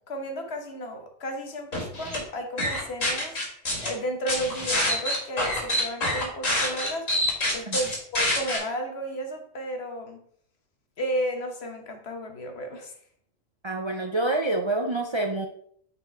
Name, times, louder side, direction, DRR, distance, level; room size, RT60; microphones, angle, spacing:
voice 1, 0.1-7.1 7.5-10.2 11.0-12.9, equal, 50° left, 4 dB, 1.3 m, -33 dB
sound 1, 1.7-2.2 2.6-3.9 4.3-8.6, left 1 dB, 70° left, 2.5 m, -26 dB
voice 2, 13.6-15.5, right 2 dB, 35° right, 3 dB, 0.4 m, -27 dB
6.0 x 5.0 x 4.5 m, 0.64 s
omnidirectional pair, 1.4 m